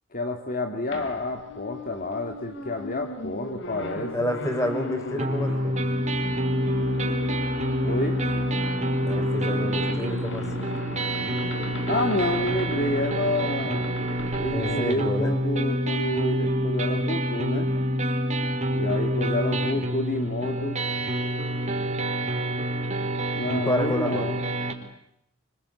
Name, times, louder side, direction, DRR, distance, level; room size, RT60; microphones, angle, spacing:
voice 1, 0.1-4.1 7.8-8.2 11.9-13.9 14.4-17.7 18.7-20.8 23.3-24.4, left 1 dB, 45° left, 4 dB, 2.4 m, -29 dB
sound 1, 0.9-15.5, left 1 dB, 60° left, 4.2 m, -37 dB
voice 2, 4.1-5.8 9.0-10.7 14.5-15.4 23.5-24.3, left 1 dB, 15° left, 6 dB, 5.5 m, -29 dB
sound 2, 5.2-24.7, right 1 dB, 35° right, 4.0 m, -27 dB
26.5 x 26.0 x 8.4 m, 0.79 s
head